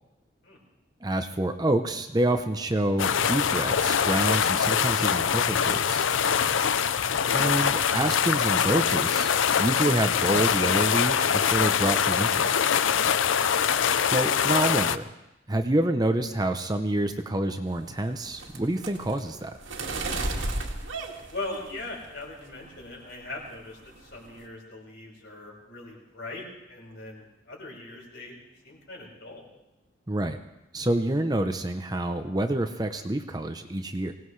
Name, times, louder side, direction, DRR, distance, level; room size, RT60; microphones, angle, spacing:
voice 1, 1.0-6.1 7.3-9.3 9.6-12.5 14.1-15.0 15.5-19.6 30.1-30.4 30.7-34.1, right 1 dB, 20° right, 7 dB, 0.7 m, -27 dB
sound 1, 3.0-15.0, left 7 dB, 80° left, 0.5 m, -24 dB
sound 2, 17.7-22.1 22.5-23.0 23.3-23.5 23.8-24.4, right 2 dB, 80° right, 2.1 m, -34 dB
voice 2, 21.3-28.4 28.6-29.5, left 2 dB, 60° left, -3 dB, 5.2 m, -40 dB
24.5 x 18.0 x 3.2 m, 0.93 s
head